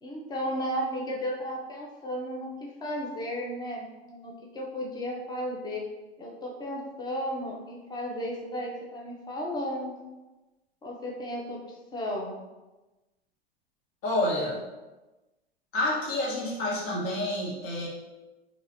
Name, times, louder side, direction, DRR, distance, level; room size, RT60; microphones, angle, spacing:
voice 1, 0.0-2.5 2.8-5.8 6.2-9.9 10.8-12.3, equal, 15° left, -2 dB, 0.8 m, -34 dB
voice 2, 14.0-14.6 15.7-17.9, left 1 dB, 45° left, -4 dB, 1.5 m, -28 dB
4.6 x 3.3 x 2.7 m, 1.1 s
hypercardioid pair, 95°, 31 cm